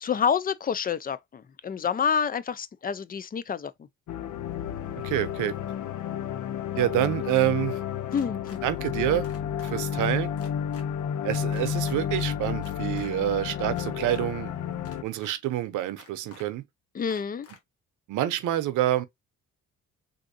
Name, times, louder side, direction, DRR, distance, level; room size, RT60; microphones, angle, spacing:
voice 1, 0.0-3.7 8.1-8.6 16.9-17.5, left 7 dB, 30° left, 0.4 m, -28 dB
sound 1, 4.1-15.0, left 9 dB, 70° left, 0.6 m, -31 dB
voice 2, 5.0-5.6 6.8-7.8 8.6-9.3 9.6-10.3 11.2-14.5 15.0-16.6 18.1-19.0, right 13 dB, 85° right, 0.7 m, -27 dB
sound 2, 8.1-8.6 9.2-9.7 10.4-10.8 11.5-12.0 12.6-13.1 13.7-14.2 14.8-15.3 16.0-16.4 17.1-17.6, left 5 dB, 50° left, 1.2 m, -50 dB
3.5 x 2.6 x 2.5 m
cardioid pair, 90°, 30 cm